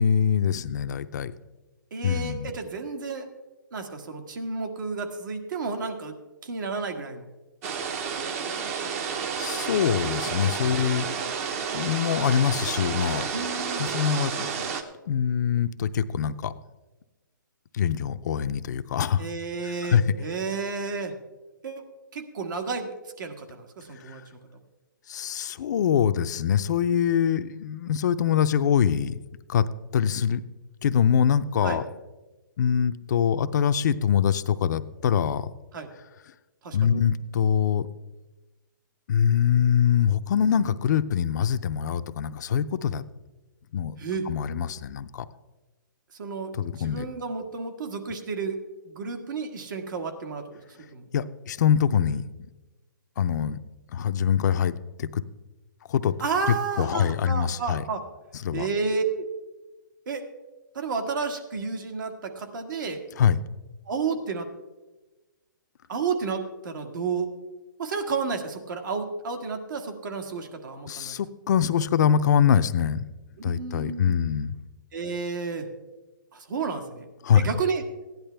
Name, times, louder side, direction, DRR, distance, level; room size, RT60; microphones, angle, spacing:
voice 1, 0.0-1.3 2.0-2.5 9.4-11.1 11.7-13.3 13.8-14.7 15.1-16.5 17.7-19.2 19.6-20.0 25.1-29.2 29.5-29.6 29.9-30.4 30.8-31.8 32.6-35.5 36.7-37.9 39.1-43.0 43.7-43.9 44.3-45.2 46.6-47.1 51.1-52.2 53.2-53.6 53.9-55.2 55.9-56.1 56.8-57.8 58.4-58.7 63.2-63.4 70.9-73.0 73.4-74.5 77.2-77.5, left 8 dB, 55° left, 12 dB, 0.5 m, -24 dB
voice 2, 1.9-3.2 3.7-6.2 6.4-7.3 10.4-10.5 13.3-13.8 19.2-21.1 21.6-21.8 22.1-22.9 23.2-24.2 31.6-31.8 35.7-35.9 36.6-36.9 44.0-44.3 46.2-48.6 48.8-50.4 50.9-51.0 56.2-58.0 58.5-59.3 60.1-60.3 60.7-63.0 63.9-64.5 65.9-67.3 67.8-71.1 73.4-74.2 74.9-75.7 76.3-77.0 77.3-77.8, right 4 dB, 65° right, 5 dB, 1.7 m, -31 dB
sound 1, 7.6-14.8, right 6 dB, 40° right, 1.0 m, -30 dB
15.5 x 10.5 x 3.4 m, 1.1 s
hypercardioid pair, 145°, 11 cm